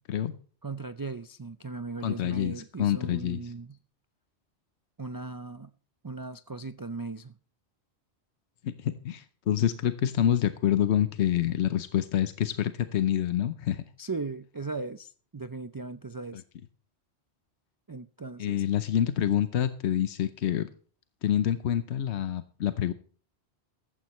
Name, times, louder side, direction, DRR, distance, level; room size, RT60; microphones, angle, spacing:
voice 1, 0.6-3.8 5.0-5.7 6.0-7.3 14.0-16.4 17.9-18.6, right 3 dB, 35° right, 0.3 m, -38 dB
voice 2, 2.0-3.4 8.6-13.8 18.4-20.7 21.2-22.9, left 10 dB, 80° left, 1.1 m, -27 dB
15.0 x 13.5 x 3.1 m
omnidirectional pair, 1.1 m